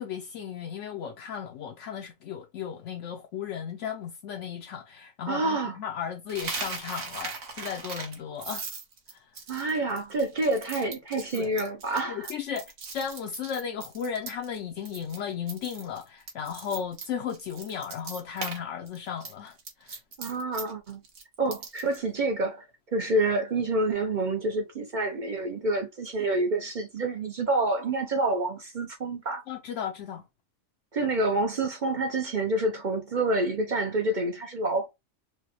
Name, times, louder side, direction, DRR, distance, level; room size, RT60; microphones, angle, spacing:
voice 1, 0.0-8.7 9.1-9.3 11.3-11.5 12.1-20.0 29.5-30.3, left 8 dB, 75° left, 0.9 m, -35 dB
voice 2, 5.3-5.8 9.5-12.3 20.2-21.0 21.4-22.7 22.9-29.4 30.9-34.9, right 2 dB, 50° right, 0.6 m, -28 dB
Coin (dropping), 6.3-14.6 14.8-15.2 15.5-18.6 18.9-22.0, right 4 dB, 75° right, 1.4 m, -39 dB
4.7 x 2.1 x 2.8 m
omnidirectional pair, 1.3 m